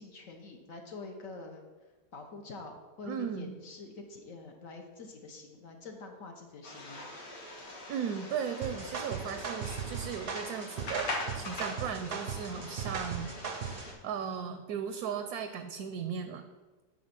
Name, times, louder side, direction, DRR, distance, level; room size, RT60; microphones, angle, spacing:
voice 1, 0.0-1.6 2.1-7.1, left 3 dB, 55° left, 3 dB, 1.1 m, -46 dB
voice 2, 3.0-3.6 7.9-13.3 13.6-16.4, right 7 dB, 70° right, 8 dB, 1.0 m, -37 dB
sound 1, 6.6-13.9, left 2 dB, 75° left, 2.1 m, -42 dB
sound 2, 8.6-13.9, right 6 dB, 55° right, 0.6 m, -38 dB
8.7 x 4.1 x 5.8 m, 1.3 s
omnidirectional pair, 1.9 m